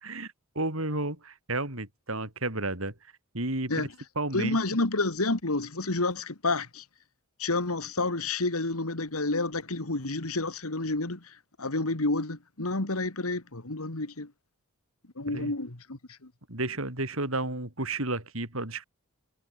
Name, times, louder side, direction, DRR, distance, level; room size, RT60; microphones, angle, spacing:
voice 1, 0.0-2.9 3.3-3.9 4.2-4.6 15.3-15.5 16.5-18.8, right 2 dB, 65° right, 5.5 m, -32 dB
voice 2, 4.3-6.8 7.4-14.3 15.2-16.3, left 2 dB, 75° left, 2.3 m, -30 dB
head